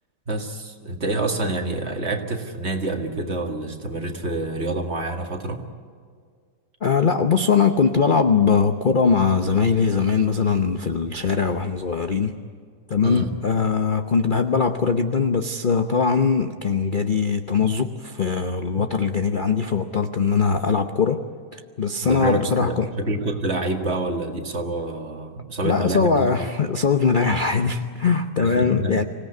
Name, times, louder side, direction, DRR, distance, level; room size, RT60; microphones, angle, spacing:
voice 1, 0.3-5.6 13.0-13.3 22.0-26.5 28.4-29.0, right 2 dB, 40° right, 3 dB, 2.2 m, -27 dB
voice 2, 6.8-12.4 12.9-21.2 21.5-22.9 25.6-29.0, left 5 dB, 40° left, 7 dB, 0.8 m, -21 dB
25.5 x 17.5 x 9.4 m, 2.1 s
omnidirectional pair, 1.8 m